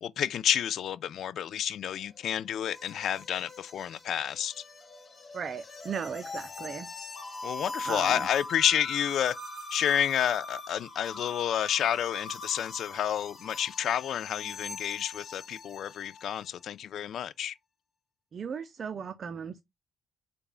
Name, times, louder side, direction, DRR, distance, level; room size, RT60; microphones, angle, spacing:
voice 1, 0.0-4.6 7.4-9.4 9.7-17.5, left 10 dB, 70° left, 0.3 m, -30 dB
sound 1, 1.9-16.5, left 2 dB, 35° left, 1.2 m, -42 dB
voice 2, 5.3-6.9 7.8-8.3 18.3-19.6, right 6 dB, 50° right, 0.4 m, -37 dB
4.0 x 2.2 x 3.7 m
cardioid pair, 90°, 0 cm